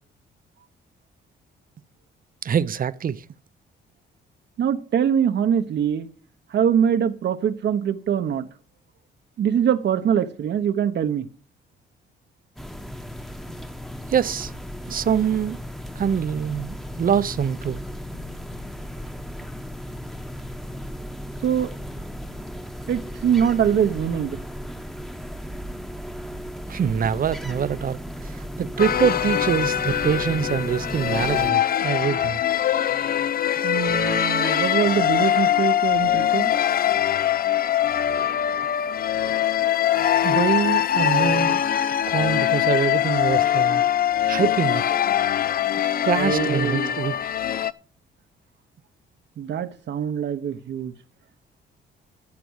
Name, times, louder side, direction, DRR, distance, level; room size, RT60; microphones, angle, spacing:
voice 1, 2.4-3.3 14.1-14.5 14.9-15.6 15.9-17.8 26.7-32.4 40.2-41.6 42.1-43.8 44.3-44.8 46.0-47.1, right 8 dB, 45° right, 0.7 m, -24 dB
voice 2, 4.6-6.1 6.5-8.5 9.4-11.3 21.4-21.7 22.9-24.4 33.6-36.5 46.2-46.9 49.4-50.9, right 8 dB, 60° right, 1.1 m, -23 dB
sound 1, 12.6-31.5, equal, ahead, 1.1 m, -35 dB
sound 2, 28.8-47.7, left 10 dB, 50° left, 0.6 m, -22 dB
13.0 x 6.9 x 6.4 m
cardioid pair, 90°, 20 cm